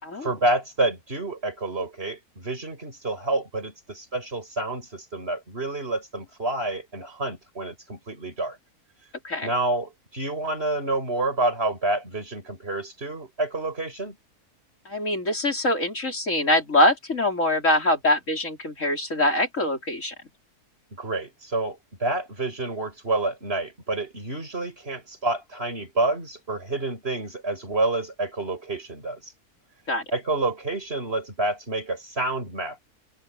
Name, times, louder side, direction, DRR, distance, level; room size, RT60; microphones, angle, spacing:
voice 1, 0.2-8.6 9.4-14.2 20.9-29.3 30.1-32.8, right 2 dB, 40° right, 7.2 m, -28 dB
voice 2, 14.8-20.1 29.9-30.0, left 1 dB, 55° left, 4.8 m, -23 dB
open air
omnidirectional pair, 1.6 m